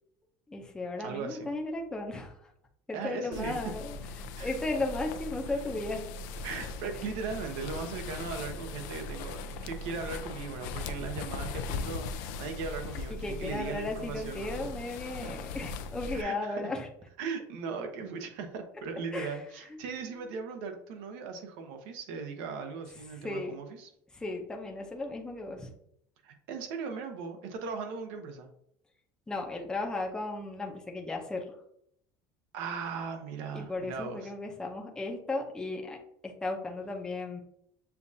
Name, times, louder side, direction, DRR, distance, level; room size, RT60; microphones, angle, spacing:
voice 1, 0.5-2.5 2.9-4.0 4.4-6.1 13.1-16.9 19.1-19.4 20.1-20.3 23.2-23.5 24.1-25.7 29.3-31.6 33.5-37.4, left 2 dB, 10° left, 1 dB, 0.6 m, -35 dB
voice 2, 1.0-1.5 2.9-3.6 4.4-4.5 6.4-14.7 15.2-15.3 16.1-16.6 17.2-23.9 26.2-28.5 32.5-34.3, right 5 dB, 80° right, 5 dB, 0.8 m, -38 dB
sound 1, 3.3-16.2, left 3 dB, 90° left, 0.4 m, -39 dB
6.8 x 2.4 x 2.7 m, 0.71 s
cardioid pair, 150°, 9 cm